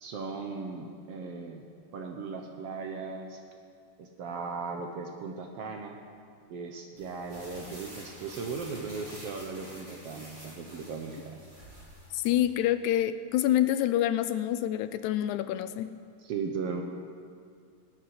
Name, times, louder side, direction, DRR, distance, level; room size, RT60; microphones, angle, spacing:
voice 1, 0.0-1.7 1.9-3.4 4.0-5.9 6.5-11.5 16.2-16.8, right 4 dB, 65° right, 3 dB, 1.6 m, -37 dB
sound 1, 7.0-12.3, equal, 20° right, 4.0 m, -48 dB
voice 2, 12.1-15.9, left 12 dB, 80° left, 12 dB, 1.9 m, -27 dB
18.0 x 7.4 x 9.4 m, 2.3 s
omnidirectional pair, 3.5 m